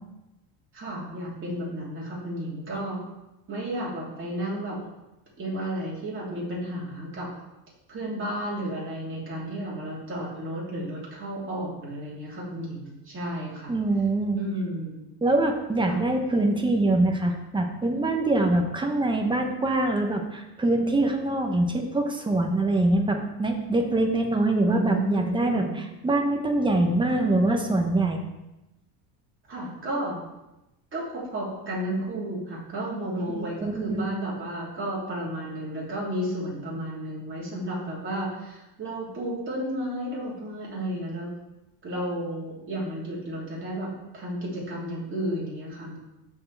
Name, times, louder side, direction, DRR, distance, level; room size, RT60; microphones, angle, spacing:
voice 1, 0.7-3.0 3.5-4.8 5.4-7.3 7.9-13.7 14.4-15.1 15.9-16.0 24.6-25.8 27.1-27.3 29.5-30.2 30.9-41.3 41.8-46.0, right 1 dB, 25° right, -5 dB, 2.8 m, -32 dB
voice 2, 13.7-14.4 15.2-25.7 26.0-28.2 33.3-34.0, right 2 dB, 10° right, 3 dB, 0.8 m, -24 dB
13.5 x 4.6 x 3.4 m, 0.96 s
cardioid pair, 150°, 46 cm